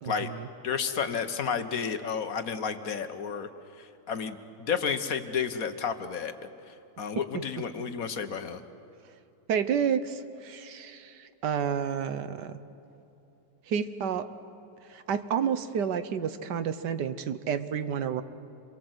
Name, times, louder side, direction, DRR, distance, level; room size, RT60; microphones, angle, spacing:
voice 1, 0.0-0.5 9.5-12.5 13.7-14.3 14.9-18.2, right 7 dB, 85° right, 11 dB, 1.6 m, -30 dB
voice 2, 0.6-3.5 3.8-6.3 6.7-8.6, left 6 dB, 60° left, 8 dB, 1.5 m, -31 dB
28.0 x 22.5 x 8.0 m, 2.8 s
omnidirectional pair, 1.8 m